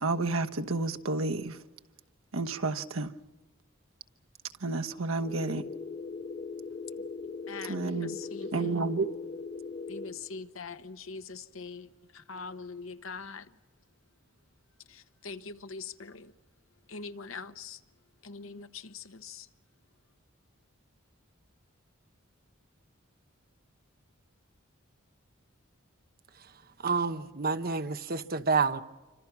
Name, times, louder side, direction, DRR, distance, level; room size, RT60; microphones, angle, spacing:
voice 1, 0.0-1.5 2.3-3.1 4.6-5.6 7.7-8.1 8.5-9.1, right 3 dB, 90° right, 1.2 m, -30 dB
sound 1, 5.2-10.1, left 4 dB, 40° left, 3.2 m, -40 dB
voice 2, 7.5-8.8 9.9-13.5 14.9-16.3 16.9-17.8 18.2-19.5, left 4 dB, 80° left, 1.2 m, -43 dB
voice 3, 26.8-28.8, right 4 dB, 45° right, 1.0 m, -28 dB
27.5 x 25.5 x 6.0 m
head